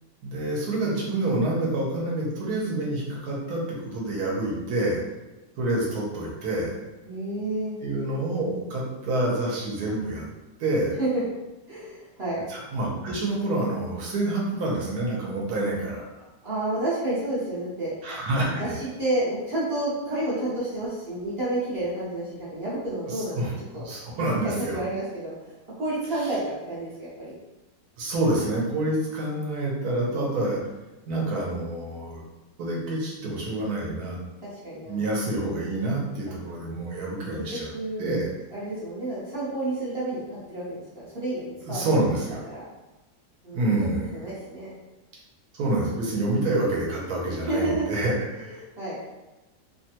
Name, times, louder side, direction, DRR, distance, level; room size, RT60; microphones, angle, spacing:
voice 1, 0.2-5.0 5.6-6.7 7.8-10.2 10.6-10.9 12.5-16.0 18.0-18.8 23.4-24.9 28.0-30.6 31.1-32.2 32.6-34.2 34.9-37.7 38.0-38.3 41.6-42.4 43.5-44.1 45.5-48.5, right 2 dB, 70° right, -3 dB, 1.2 m, -27 dB
voice 2, 7.0-7.7 11.0-11.2 11.7-12.5 16.4-17.9 18.3-23.4 23.7-27.4 34.4-35.1 37.5-38.1 38.5-41.9 42.3-42.6 43.4-43.7 44.1-44.7 47.4-47.9 48.3-49.0, right 1 dB, 45° right, -8 dB, 0.9 m, -30 dB
3.2 x 2.2 x 2.8 m, 1.1 s
omnidirectional pair, 1.8 m